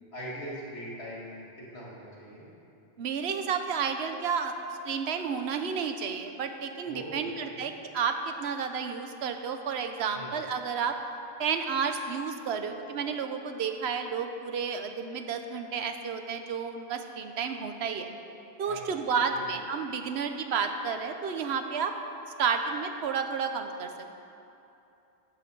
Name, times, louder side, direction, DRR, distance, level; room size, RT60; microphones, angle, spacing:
voice 1, 0.1-2.5 6.8-7.6 10.1-10.4 18.6-19.4, equal, 75° left, -6 dB, 2.9 m, -42 dB
voice 2, 3.0-4.5 4.8-11.0 11.4-18.1 18.6-21.9 22.4-23.9, right 6 dB, 80° right, 6 dB, 1.0 m, -31 dB
14.5 x 8.2 x 5.3 m, 2.8 s
omnidirectional pair, 1.1 m